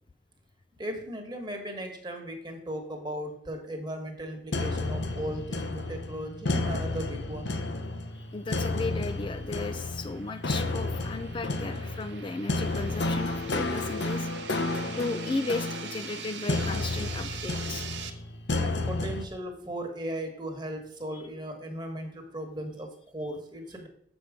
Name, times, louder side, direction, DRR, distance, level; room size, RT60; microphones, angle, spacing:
voice 1, 0.8-7.6 18.6-23.9, right 1 dB, 25° right, 4 dB, 1.4 m, -37 dB
sound 1, 4.5-19.3, left 2 dB, 75° left, 0.8 m, -32 dB
sound 2, 7.7-18.1, right 7 dB, 75° right, 0.7 m, -44 dB
voice 2, 8.1-14.5 15.0-18.2 21.1-21.2, left 3 dB, 30° left, 9 dB, 0.3 m, -35 dB
7.0 x 6.2 x 5.0 m, 0.66 s
head